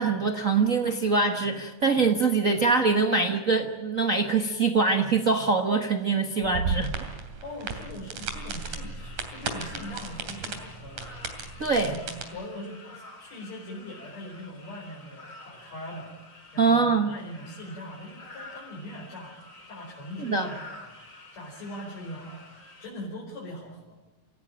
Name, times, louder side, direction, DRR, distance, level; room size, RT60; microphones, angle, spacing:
voice 1, 0.0-6.9 11.6-11.9 16.6-17.1 20.2-20.5, right 4 dB, 50° right, 4 dB, 0.9 m, -23 dB
sound 1, 6.4-12.2, right 4 dB, 75° right, 4.3 m, -34 dB
voice 2, 7.4-11.4 11.8-19.4 19.7-22.5 22.8-24.0, left 1 dB, 60° left, -4 dB, 5.8 m, -41 dB
sound 2, 8.5-22.9, left 2 dB, 25° left, 4.6 m, -49 dB
28.0 x 16.5 x 8.7 m, 1.0 s
omnidirectional pair, 3.5 m